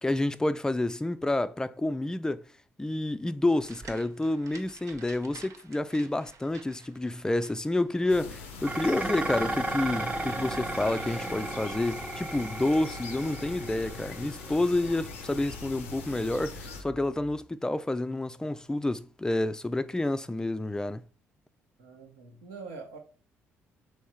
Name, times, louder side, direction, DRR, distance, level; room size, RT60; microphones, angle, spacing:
voice 1, 0.0-2.4 2.8-21.0, left 2 dB, 10° left, 0.4 m, -29 dB
sound 1, 3.6-11.5, right 4 dB, 55° right, 0.7 m, -52 dB
sound 2, 8.1-16.8, left 5 dB, 90° left, 0.5 m, -43 dB
Dishes pots and pans, 8.6-17.4, right 2 dB, 20° right, 0.7 m, -36 dB
voice 2, 21.8-23.0, right 4 dB, 75° right, 0.9 m, -44 dB
3.5 x 3.2 x 4.3 m
hypercardioid pair, 45°, 7 cm